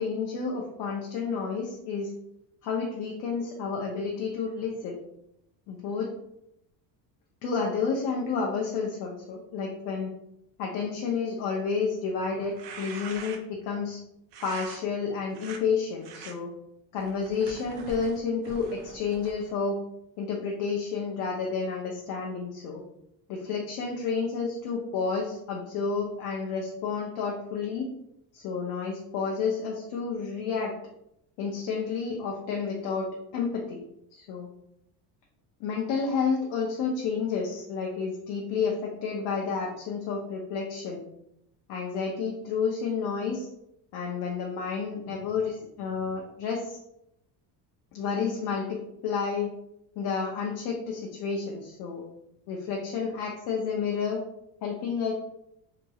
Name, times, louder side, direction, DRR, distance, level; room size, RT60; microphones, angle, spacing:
voice 1, 0.0-2.1 2.6-5.0 5.7-6.1 7.4-10.1 10.6-14.0 14.4-16.5 16.9-19.8 20.2-22.8 23.3-27.9 28.3-30.7 31.4-33.1 33.3-33.8 34.1-34.5 35.6-41.0 41.7-43.5 43.9-46.8 47.9-49.5 50.0-52.0 52.5-54.2 54.6-55.1, left 5 dB, 80° left, -1 dB, 0.6 m, -30 dB
sound 1, 12.4-13.6 14.3-14.8 15.3-15.6 16.0-16.3 17.0-19.5, right 5 dB, 75° right, 0.6 m, -43 dB
2.9 x 2.6 x 2.3 m, 0.80 s
cardioid pair, 130°, 43 cm